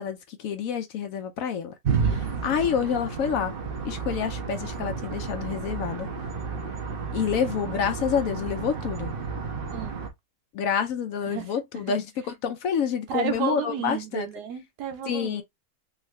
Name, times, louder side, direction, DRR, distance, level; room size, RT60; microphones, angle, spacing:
voice 1, 0.0-1.7 2.1-3.5 3.8-6.1 7.1-9.1 10.5-14.3 15.1-15.4, left 7 dB, 70° left, 0.9 m, -28 dB
sound 1, 1.8-10.1, right 5 dB, 45° right, 0.8 m, -31 dB
voice 2, 9.7-10.0 11.3-11.5 13.1-15.4, right 9 dB, 80° right, 1.4 m, -32 dB
3.6 x 2.4 x 3.1 m
omnidirectional pair, 1.7 m